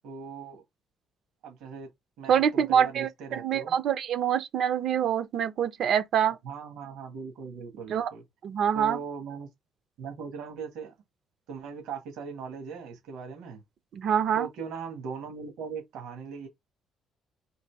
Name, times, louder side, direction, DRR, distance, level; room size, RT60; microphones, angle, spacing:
voice 1, 0.0-0.6 1.4-1.9 2.2-3.8 6.4-8.2 8.7-9.5 10.0-10.9 11.5-13.6 14.3-16.5, right 5 dB, 80° right, 1.6 m, -39 dB
voice 2, 2.3-6.4 7.9-8.1 8.4-9.0 13.9-14.5, right 8 dB, 60° right, 0.7 m, -25 dB
3.9 x 2.7 x 4.7 m
cardioid pair, 130°, 0 cm